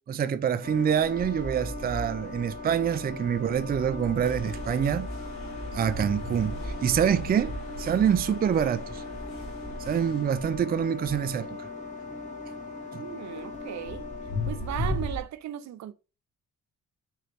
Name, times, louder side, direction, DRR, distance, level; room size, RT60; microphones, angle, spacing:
voice 1, 0.0-5.1 5.7-9.0 9.8-11.7 12.9-13.0, right 8 dB, 30° right, 0.4 m, -26 dB
sound 1, 0.6-15.2, left 2 dB, 25° left, 1.8 m, -36 dB
sound 2, 4.2-10.8, left 4 dB, 85° left, 3.3 m, -49 dB
voice 2, 13.0-14.0 14.5-15.9, right 11 dB, 65° right, 0.7 m, -36 dB
7.1 x 4.0 x 3.4 m
cardioid pair, 90°, 30 cm